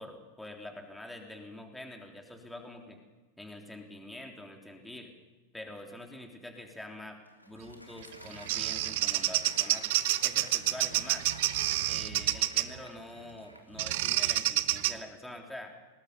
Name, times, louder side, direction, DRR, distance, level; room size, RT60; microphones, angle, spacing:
voice 1, 0.0-3.0 3.4-5.1 5.5-7.2 7.4-9.9 10.2-11.3 11.9-15.7, left 1 dB, 5° left, 2 dB, 3.5 m, -45 dB
Applause, 6.9-14.5, left 1 dB, 90° left, 2.7 m, -51 dB
Bird vocalization bird call bird song, 8.0-12.8 13.8-15.0, right 16 dB, 50° right, 0.8 m, -28 dB
25.0 x 19.0 x 5.4 m, 1.2 s
figure-of-eight pair, 90°, 0 cm